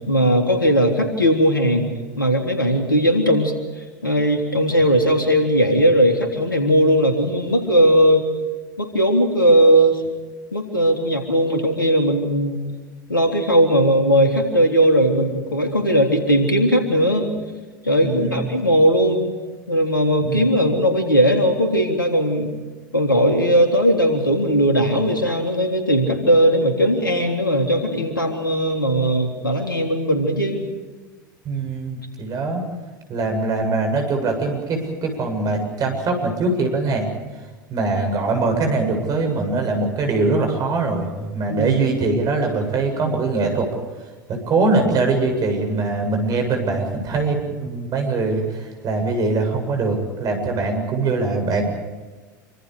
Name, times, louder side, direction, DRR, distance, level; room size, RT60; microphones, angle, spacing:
voice 1, 0.1-1.9 2.2-3.5 4.0-8.3 8.8-10.0 10.5-12.6 13.1-17.3 17.8-19.3 19.7-22.5 22.9-30.7 41.5-41.8, equal, 90° left, 4 dB, 3.6 m, -18 dB
voice 2, 18.0-18.5 20.2-20.6 31.4-32.6 33.1-37.1 37.7-43.7 44.3-51.6, right 3 dB, 35° right, 4 dB, 7.9 m, -22 dB
27.5 x 25.5 x 5.1 m, 1.3 s
figure-of-eight pair, 80°, 11 cm